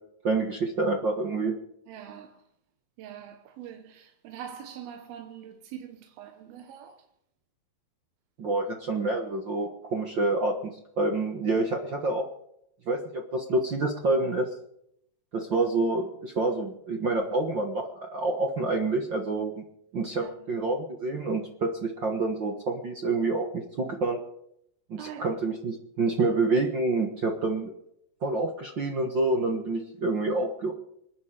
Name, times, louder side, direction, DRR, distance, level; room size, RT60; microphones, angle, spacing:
voice 1, 0.2-1.6 8.4-10.5 11.0-12.3 12.9-14.5 15.3-19.6 19.9-24.2 24.9-27.7 28.2-30.7, right 2 dB, 55° right, 1.3 m, -27 dB
voice 2, 1.9-2.4 3.0-7.0 20.2-20.5 25.0-25.4 26.2-26.3, right 9 dB, 90° right, 3.0 m, -43 dB
26.0 x 9.7 x 5.0 m
omnidirectional pair, 4.2 m